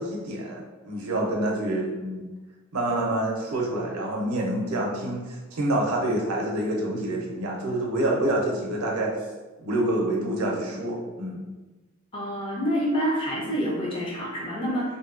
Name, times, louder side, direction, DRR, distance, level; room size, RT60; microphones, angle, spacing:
voice 1, 0.0-2.3 2.7-9.1 9.6-11.4, right 1 dB, 90° right, -1 dB, 0.6 m, -27 dB
voice 2, 12.1-15.0, equal, 25° left, -4 dB, 0.5 m, -27 dB
2.6 x 2.2 x 2.4 m, 1.2 s
head